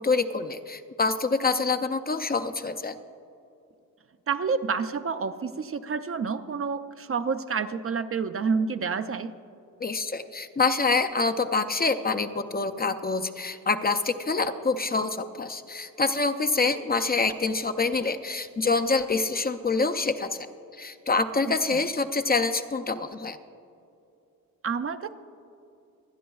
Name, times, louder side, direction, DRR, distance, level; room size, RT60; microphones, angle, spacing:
voice 1, 0.0-3.0 9.8-20.5 20.7-23.4, left 4 dB, 30° left, 9 dB, 0.5 m, -26 dB
voice 2, 4.3-9.3 21.5-21.8 24.6-25.1, right 5 dB, 40° right, 10 dB, 0.5 m, -29 dB
25.0 x 10.0 x 2.3 m, 2.6 s
wide cardioid pair, 110°, 33 cm